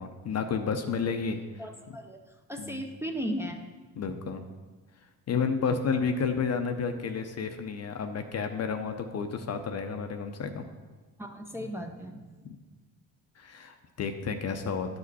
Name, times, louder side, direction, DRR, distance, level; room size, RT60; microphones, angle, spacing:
voice 1, 0.0-1.4 2.6-2.8 4.0-4.4 5.3-10.6 12.4-12.6 13.4-15.0, left 5 dB, 40° left, 7 dB, 0.7 m, -31 dB
voice 2, 1.6-3.6 4.1-4.2 11.2-12.4, equal, 5° right, 2 dB, 0.6 m, -36 dB
10.5 x 5.2 x 4.1 m, 1.3 s
cardioid pair, 100°, 38 cm